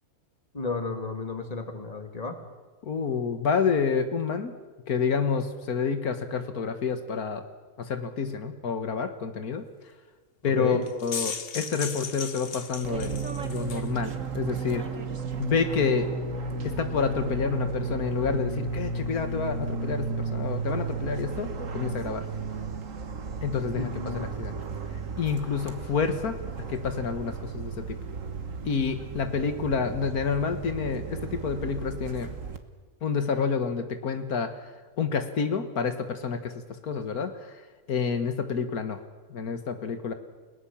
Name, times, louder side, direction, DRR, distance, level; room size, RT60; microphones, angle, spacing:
voice 1, 0.5-2.3 10.4-10.8 23.8-24.3, left 3 dB, 25° left, 6 dB, 2.3 m, -33 dB
voice 2, 2.8-4.5 4.9-7.4 7.8-9.7 10.4-14.9 15.4-16.1 16.6-22.3 23.4-23.9 24.1-24.5 25.2-26.4 26.7-28.0 28.7-32.3 33.0-34.5 35.0-36.5 36.8-37.5 37.9-39.0 39.3-40.1, left 5 dB, 90° left, 8 dB, 2.0 m, -28 dB
sound 1, 10.8-13.9, left 6 dB, 45° left, 1.2 m, -36 dB
Fixed-wing aircraft airplane, 12.8-32.6, right 4 dB, 60° right, 1.8 m, -34 dB
29.5 x 18.0 x 7.3 m, 1.3 s
omnidirectional pair, 1.5 m